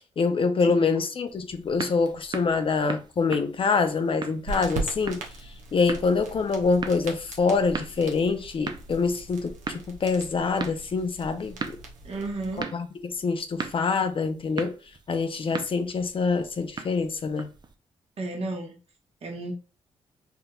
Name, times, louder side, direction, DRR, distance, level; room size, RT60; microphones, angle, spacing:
voice 1, 0.2-5.2 5.7-11.8 12.7-14.8 15.1-17.5, left 4 dB, 45° left, 0.5 m, -25 dB
sound 1, 1.3-17.7, right 5 dB, 35° right, 0.5 m, -40 dB
sound 2, 4.5-12.6, right 3 dB, 80° right, 0.8 m, -39 dB
voice 2, 12.0-12.7 18.2-18.8 19.2-19.5, right 2 dB, 55° right, 1.0 m, -33 dB
3.5 x 2.7 x 2.3 m
supercardioid pair, 55°, 13 cm